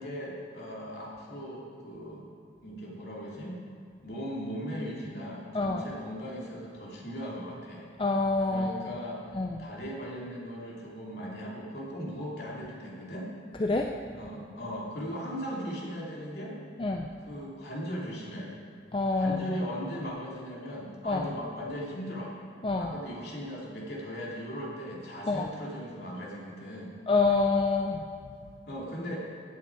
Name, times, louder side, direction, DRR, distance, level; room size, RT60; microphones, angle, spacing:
voice 1, 0.0-2.3 2.6-3.6 4.0-7.9 8.5-13.3 14.1-16.6 17.2-18.6 19.1-22.3 22.8-27.0 28.7-29.3, equal, 65° left, -4 dB, 2.9 m, -38 dB
voice 2, 8.0-8.9 9.4-9.6 13.6-13.9 16.8-17.1 18.9-19.4 21.1-21.2 22.6-22.9 25.3-25.5 27.1-28.0, left 3 dB, 30° left, 3 dB, 0.5 m, -26 dB
16.0 x 8.4 x 4.8 m, 2.3 s
head